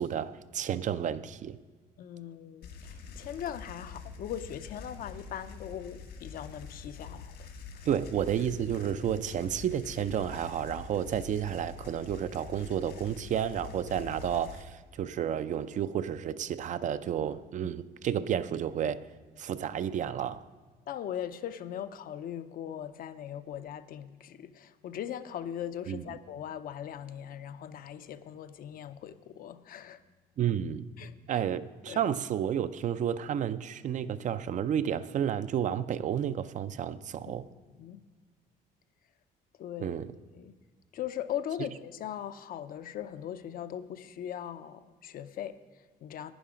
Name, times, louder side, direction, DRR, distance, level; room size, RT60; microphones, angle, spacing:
voice 1, 0.0-1.6 7.9-19.1 19.4-20.4 25.9-26.0 30.4-30.9 31.3-37.5 39.8-40.1, right 9 dB, 45° right, 0.4 m, -31 dB
voice 2, 2.0-7.9 17.6-17.7 20.9-30.0 31.0-31.4 31.9-32.0 37.8-38.0 39.6-40.0 40.3-40.5 40.9-46.3, left 10 dB, 60° left, 0.6 m, -40 dB
sound 1, 2.6-14.6, left 5 dB, 75° left, 1.8 m, -46 dB
11.5 x 9.6 x 5.0 m
cardioid pair, 110°, 17 cm